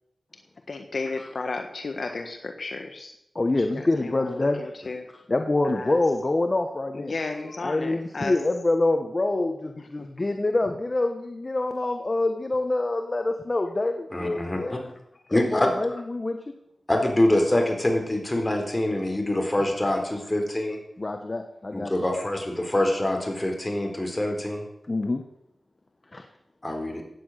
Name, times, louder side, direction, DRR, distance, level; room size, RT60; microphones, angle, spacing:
voice 1, 0.7-3.1 3.7-5.1 5.6-6.0 6.9-8.3 9.8-10.1 19.9-20.0, left 3 dB, 65° left, 5 dB, 1.5 m, -34 dB
voice 2, 3.3-4.6 5.3-7.1 7.6-14.8 15.3-16.5 21.0-21.9 24.9-25.2 26.1-26.2, left 2 dB, 35° left, 5 dB, 1.3 m, -26 dB
voice 3, 14.1-14.8 15.3-15.7 16.9-20.8 21.7-24.6 26.6-27.0, left 1 dB, 20° left, 3 dB, 4.1 m, -25 dB
16.0 x 9.6 x 6.6 m, 0.81 s
wide cardioid pair, 60°, 0 cm